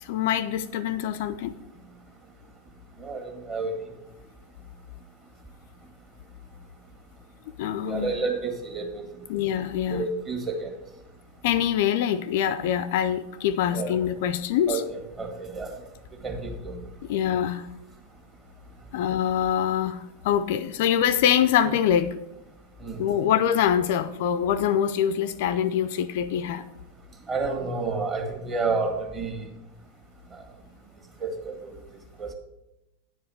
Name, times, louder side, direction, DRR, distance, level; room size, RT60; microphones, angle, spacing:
voice 1, 0.0-1.5 7.6-8.1 9.3-10.1 11.4-14.8 17.1-17.7 18.9-22.1 23.0-26.6, left 9 dB, 50° left, 0.4 m, -24 dB
voice 2, 3.0-3.9 7.8-9.0 9.9-10.7 13.7-13.9 14.7-15.7 16.2-16.8 22.8-23.0 27.3-29.5 31.2-31.7 32.2-32.3, right 4 dB, 25° right, 1.7 m, -30 dB
9.7 x 4.8 x 6.2 m
figure-of-eight pair, 90°, 0 cm